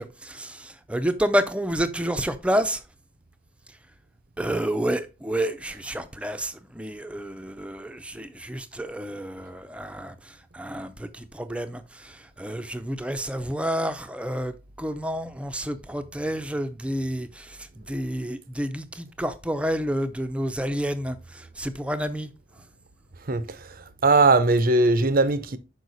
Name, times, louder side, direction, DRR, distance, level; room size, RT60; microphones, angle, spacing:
voice 1, 0.0-2.8 4.4-22.3, equal, 5° right, 0.6 m, -29 dB
voice 2, 24.0-25.6, right 3 dB, 50° right, 0.7 m, -19 dB
6.4 x 5.0 x 4.0 m
head